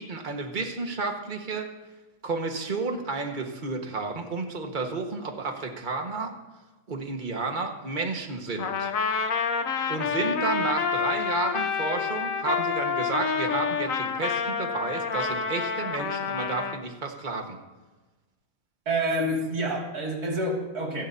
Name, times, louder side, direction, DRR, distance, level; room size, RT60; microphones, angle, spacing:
voice 1, 0.0-1.7 2.2-6.3 6.9-8.9 9.9-17.6, right 3 dB, 35° right, 3 dB, 1.6 m, -31 dB
Trumpet, 8.6-16.8, left 6 dB, 65° left, 1.3 m, -28 dB
voice 2, 18.9-21.1, right 1 dB, 90° right, -2 dB, 3.0 m, -28 dB
25.0 x 12.0 x 2.8 m, 1.2 s
omnidirectional pair, 1.6 m